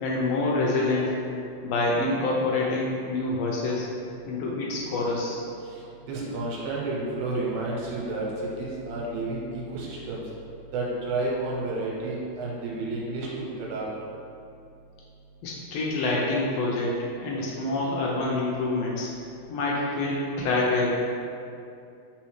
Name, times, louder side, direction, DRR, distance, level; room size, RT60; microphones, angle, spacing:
voice 1, 0.0-1.2 1.6-3.9 4.2-5.4 15.4-19.1 19.5-21.1, left 2 dB, 85° left, -4 dB, 1.4 m, -26 dB
voice 2, 5.6-10.2 10.7-13.9, right 2 dB, 80° right, -4 dB, 2.2 m, -31 dB
4.0 x 3.8 x 3.2 m, 2.6 s
omnidirectional pair, 3.5 m